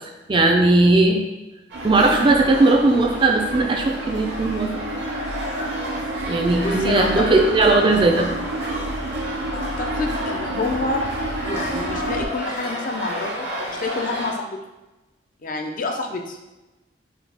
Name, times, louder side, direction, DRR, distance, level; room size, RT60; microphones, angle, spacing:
voice 1, 0.3-1.3 1.8-4.8 6.3-8.3, right 2 dB, 25° right, 2 dB, 0.4 m, -18 dB
sound 1, 1.7-14.3, equal, 65° right, 1.0 m, -31 dB
sound 2, 1.7-12.3, right 2 dB, 85° right, 0.5 m, -31 dB
voice 2, 6.6-7.5 9.5-11.1 11.4-14.6 15.4-16.4, left 3 dB, 45° left, 3 dB, 0.5 m, -28 dB
5.1 x 2.4 x 3.3 m, 1.1 s
head